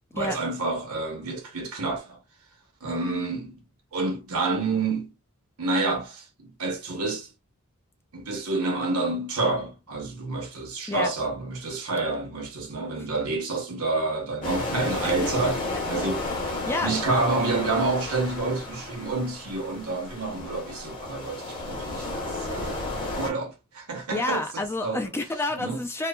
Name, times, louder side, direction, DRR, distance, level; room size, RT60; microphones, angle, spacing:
voice 1, 0.1-2.2 2.8-3.6 3.9-5.1 5.6-7.3 8.1-15.6 15.9-16.2 16.8-24.4 24.8-25.0 25.6-25.8, right 3 dB, 80° right, 1.0 m, -28 dB
sound 1, 14.4-23.3, left 2 dB, 40° left, 1.1 m, -32 dB
voice 2, 24.1-26.1, left 2 dB, 10° left, 0.3 m, -29 dB
3.0 x 2.1 x 2.3 m
head